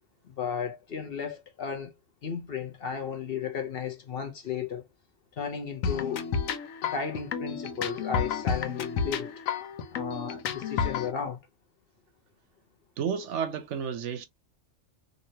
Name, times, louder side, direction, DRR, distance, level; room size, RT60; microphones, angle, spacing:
voice 1, 0.2-1.9 2.2-4.9 5.3-6.3 6.8-9.4 9.9-11.4, left 6 dB, 55° left, 0.8 m, -34 dB
sound 1, 5.8-11.1, left 6 dB, 85° left, 1.0 m, -31 dB
voice 2, 13.0-14.3, right 7 dB, 70° right, 0.9 m, -31 dB
3.0 x 2.7 x 2.7 m
omnidirectional pair, 1.3 m